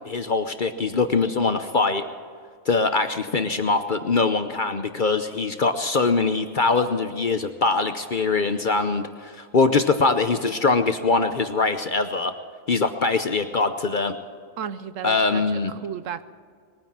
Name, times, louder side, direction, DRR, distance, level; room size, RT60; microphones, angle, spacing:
voice 1, 0.0-2.0 2.7-12.3 12.7-14.1 15.0-15.7, left 4 dB, 45° left, 9 dB, 0.7 m, -22 dB
voice 2, 14.6-16.2, right 8 dB, 70° right, 13 dB, 1.0 m, -34 dB
20.5 x 9.6 x 7.4 m, 2.1 s
omnidirectional pair, 1.5 m